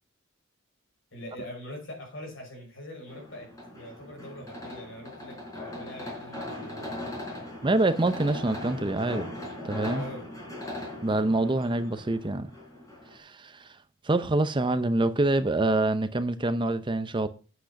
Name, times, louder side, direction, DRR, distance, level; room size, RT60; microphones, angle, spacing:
voice 1, 1.1-3.5 3.7-7.5 9.9-10.3, left 1 dB, 65° left, 5.8 m, -43 dB
sound 1, 3.1-13.2, left 1 dB, 15° left, 4.9 m, -39 dB
voice 2, 7.6-9.3 9.6-10.0 11.0-12.5 13.1-13.8 14.0-17.3, right 2 dB, 25° right, 0.6 m, -26 dB
8.8 x 8.1 x 5.8 m
head